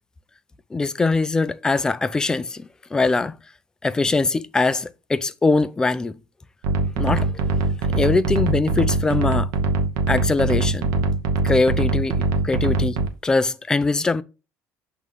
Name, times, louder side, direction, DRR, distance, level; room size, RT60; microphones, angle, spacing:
voice 1, 0.7-3.3 3.8-6.2 7.0-7.5 7.9-9.5 10.1-10.9 11.4-12.1 12.4-14.2, left 3 dB, 15° left, 0.3 m, -22 dB
sound 1, 6.6-13.1, right 3 dB, 90° right, 0.9 m, -22 dB
6.2 x 3.0 x 5.4 m
cardioid pair, 140°, 5 cm